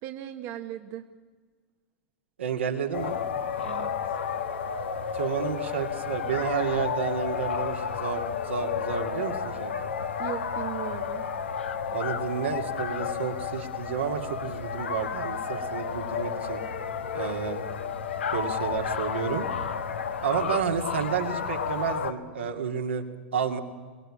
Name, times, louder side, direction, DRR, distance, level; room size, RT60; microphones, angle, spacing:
voice 1, 0.0-1.0 3.6-3.9 10.2-11.3, right 12 dB, 50° right, 6 dB, 1.2 m, -37 dB
voice 2, 2.4-3.2 5.1-10.0 11.9-16.6 17.1-17.6 18.3-19.5 20.2-23.0 23.3-23.6, right 7 dB, 85° right, 2 dB, 2.3 m, -31 dB
sound 1, 2.9-22.1, left 6 dB, 85° left, 1.4 m, -31 dB
23.5 x 18.0 x 8.6 m, 1.5 s
hypercardioid pair, 100°, 6 cm